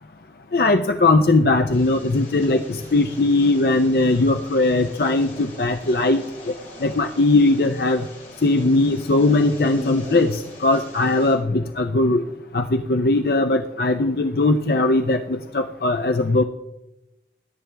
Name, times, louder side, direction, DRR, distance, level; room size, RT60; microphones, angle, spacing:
voice 1, 0.5-6.2 6.8-8.0 8.4-12.2 12.5-16.4, left 2 dB, 60° left, 7 dB, 0.6 m, -19 dB
sound 1, 1.7-11.3, left 1 dB, 40° left, 4.4 m, -40 dB
20.5 x 10.5 x 3.4 m, 0.94 s
head